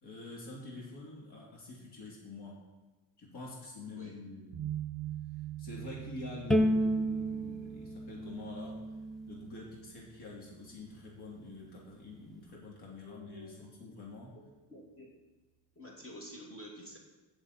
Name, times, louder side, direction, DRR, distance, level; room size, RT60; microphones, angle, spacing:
voice 1, 0.0-2.7 3.2-4.7 5.6-8.8 9.3-14.4, left 3 dB, 65° left, -4 dB, 3.1 m, -46 dB
sound 1, 4.5-11.6, right 12 dB, 40° right, 0.8 m, -45 dB
Bowed string instrument, 6.5-9.7, equal, ahead, 0.3 m, -32 dB
voice 2, 13.0-13.5 14.3-15.1 15.8-17.0, equal, 30° left, -2 dB, 2.4 m, -49 dB
16.5 x 7.0 x 4.2 m, 1.1 s
cardioid pair, 150°, 42 cm